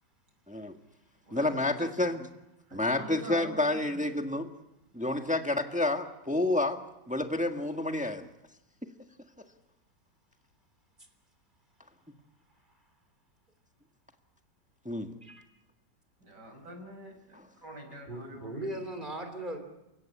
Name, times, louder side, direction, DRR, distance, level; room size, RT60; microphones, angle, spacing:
voice 1, 0.5-0.8 1.3-2.2 2.7-4.5 4.9-6.8 7.1-8.3 14.8-15.1 17.3-17.4, left 2 dB, 5° right, 5 dB, 1.3 m, -29 dB
voice 2, 1.2-1.9 2.7-4.0 5.0-5.3 16.2-18.7, right 1 dB, 70° right, 3 dB, 6.3 m, -45 dB
voice 3, 18.1-19.6, right 1 dB, 25° right, 6 dB, 3.7 m, -38 dB
29.5 x 16.5 x 8.8 m, 0.92 s
omnidirectional pair, 1.9 m